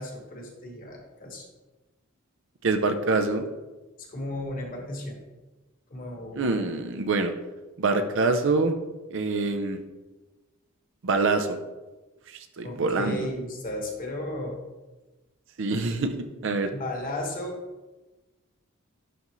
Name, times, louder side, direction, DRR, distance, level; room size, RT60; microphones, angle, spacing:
voice 1, 0.0-1.5 4.0-5.2 5.9-6.8 12.6-14.5 16.7-17.5, left 1 dB, 40° left, 1 dB, 1.4 m, -35 dB
voice 2, 2.6-3.4 6.4-7.3 7.8-8.7 9.1-9.8 11.0-11.5 12.6-13.3 15.6-16.1 16.4-16.7, right 3 dB, 60° right, 7 dB, 0.5 m, -25 dB
11.0 x 3.9 x 3.1 m, 1.2 s
head